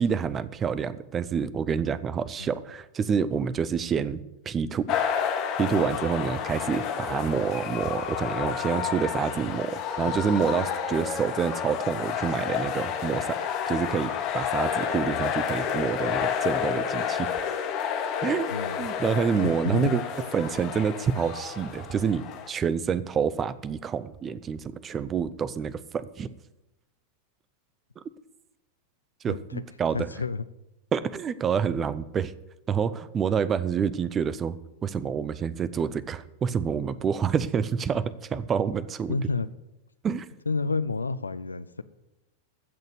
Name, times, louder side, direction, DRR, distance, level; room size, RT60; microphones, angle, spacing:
voice 1, 0.0-4.2 4.5-5.0 5.5-13.4 13.7-17.3 18.2-18.5 18.8-20.0 20.3-26.3 28.0-28.1 29.2-30.1 30.9-32.3 32.7-34.6 34.8-39.2 40.0-40.3, right 7 dB, 25° right, 0.7 m, -27 dB
sound 1, 4.9-22.5, left 8 dB, 40° left, 2.0 m, -30 dB
voice 2, 18.5-18.8 19.4-19.9 29.3-29.7 29.9-30.5 39.1-39.5 40.5-41.8, left 4 dB, 80° left, 0.6 m, -30 dB
15.0 x 6.6 x 8.2 m
figure-of-eight pair, 90°, 0 cm